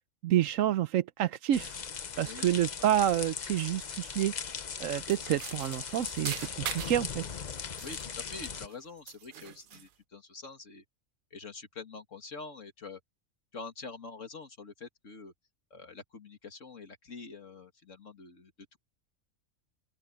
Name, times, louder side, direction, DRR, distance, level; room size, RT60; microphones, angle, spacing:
voice 1, 0.2-1.8 2.2-4.3 4.8-7.2, right 12 dB, 80° right, 1.1 m, -28 dB
sound 1, 1.5-8.7, left 6 dB, 40° left, 0.8 m, -39 dB
voice 2, 2.2-2.6 7.8-10.8 11.3-13.0 13.5-15.3 15.7-18.8, left 4 dB, 70° left, 2.4 m, -46 dB
sound 2, 5.1-7.1 7.6-8.8 9.1-9.9, right 10 dB, 55° right, 0.6 m, -42 dB
open air
omnidirectional pair, 1.4 m